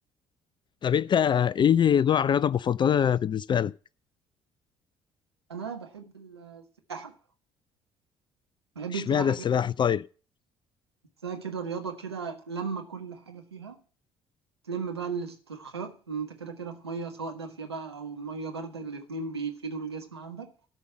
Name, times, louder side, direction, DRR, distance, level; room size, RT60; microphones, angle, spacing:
voice 1, 0.8-3.7 8.9-10.0, left 8 dB, 35° left, 0.4 m, -23 dB
voice 2, 5.5-6.6 6.9-7.1 8.7-9.4 11.2-13.8 14.7-20.5, right 5 dB, 90° right, 1.5 m, -36 dB
13.0 x 5.4 x 7.5 m
figure-of-eight pair, 50°, 13 cm